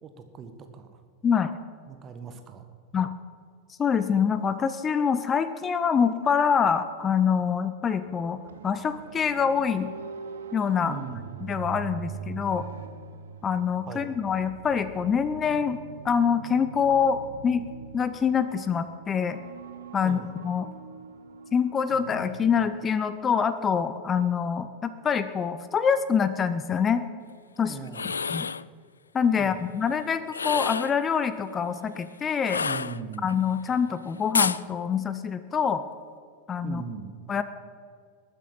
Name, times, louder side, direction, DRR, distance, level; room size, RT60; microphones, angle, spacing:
voice 1, 0.0-1.0 1.9-2.6 10.8-11.2 13.9-14.2 20.0-20.3 27.6-28.1 29.3-29.6 32.6-33.3 36.6-37.1, right 6 dB, 30° right, 7 dB, 1.6 m, -39 dB
voice 2, 1.2-1.5 2.9-3.1 3.8-9.9 10.5-11.0 11.4-12.6 13.4-17.7 17.9-19.4 19.9-20.7 21.5-27.1 27.6-27.8 28.3-28.5 29.1-32.6 33.2-35.8 36.5-36.8 37.3-37.4, left 7 dB, 20° left, 12 dB, 0.7 m, -25 dB
sound 1, 8.0-22.7, right 7 dB, 65° right, 0.9 m, -43 dB
sound 2, 27.8-28.7 30.3-31.0 32.4-33.3 34.3-34.6, left 5 dB, 75° left, 0.3 m, -28 dB
20.0 x 9.2 x 5.7 m, 2.1 s
figure-of-eight pair, 90°, 0 cm